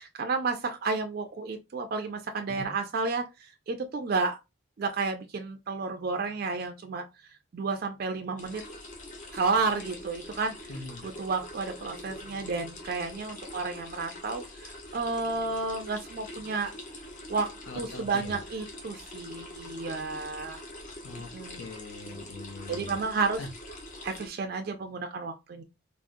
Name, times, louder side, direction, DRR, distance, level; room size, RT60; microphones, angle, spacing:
voice 1, 0.0-3.2 3.7-4.4 4.8-7.0 7.5-8.6 9.3-10.5 11.0-14.4 14.9-16.7 17.3-17.5 17.7-20.6 21.3-21.6 22.7-23.4 24.0-25.6, right 4 dB, 45° right, 0.3 m, -31 dB
sound 1, 8.4-24.3, left 1 dB, 40° left, 0.7 m, -44 dB
voice 2, 10.7-11.0 17.7-18.4 21.0-23.5, left 3 dB, 75° left, 0.6 m, -42 dB
3.6 x 2.0 x 2.5 m
head